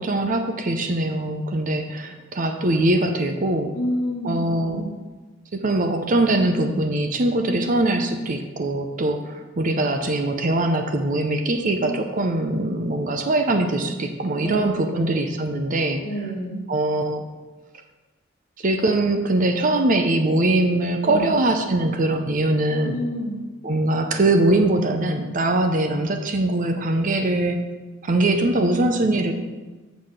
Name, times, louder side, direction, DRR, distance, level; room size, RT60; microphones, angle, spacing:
voice 1, 0.0-3.7 4.2-4.8 5.5-16.0 16.7-17.2 18.6-23.0 23.6-27.6 28.0-29.3, right 2 dB, 40° right, 5 dB, 0.6 m, -22 dB
voice 2, 3.7-4.9 11.5-11.7 14.4-15.1 16.0-16.6 21.0-21.3 22.8-23.4, equal, 35° left, -1 dB, 1.7 m, -29 dB
7.4 x 4.1 x 6.4 m, 1.2 s
head